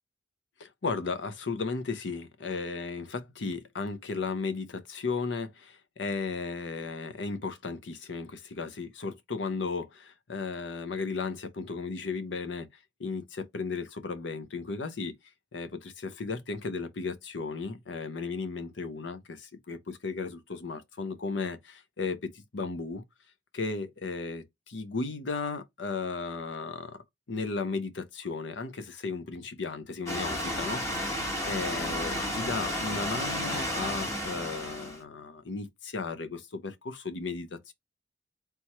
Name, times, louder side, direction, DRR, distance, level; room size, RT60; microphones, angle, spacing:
voice 1, 0.6-12.7 13.0-15.1 15.5-23.0 23.5-27.0 27.3-37.7, left 4 dB, 80° left, 0.7 m, -35 dB
sound 1, 30.1-35.0, equal, 15° left, 1.4 m, -32 dB
3.4 x 3.0 x 4.3 m
head